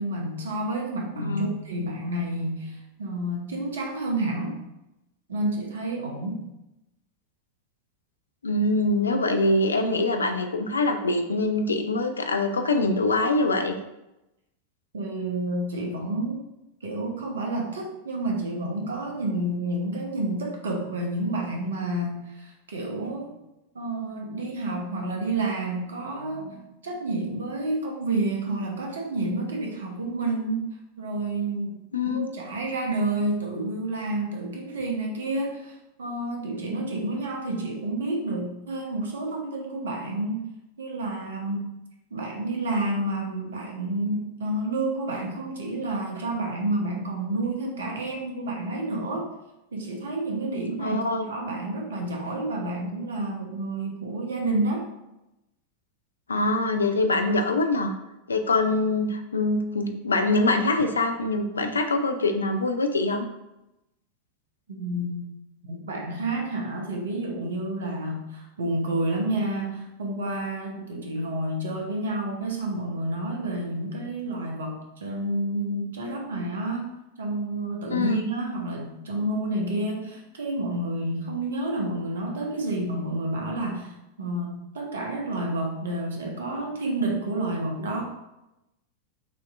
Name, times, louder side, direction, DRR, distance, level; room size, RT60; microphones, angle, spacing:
voice 1, 0.0-4.6 5.3-6.4 14.9-16.4 16.8-23.3 23.7-30.6 31.0-31.7 32.0-40.5 40.8-41.7 42.1-49.3 49.7-51.0 51.3-54.9 64.7-65.2 65.6-76.9 77.2-83.9 84.2-88.0, right 2 dB, 65° right, 0 dB, 0.9 m, -29 dB
voice 2, 1.2-1.5 8.4-13.8 31.9-32.3 50.8-51.3 56.3-57.9 58.3-63.2 77.9-78.2, left 2 dB, 75° left, 6 dB, 0.4 m, -24 dB
6.1 x 2.8 x 2.5 m, 0.93 s
figure-of-eight pair, 90°, 0 cm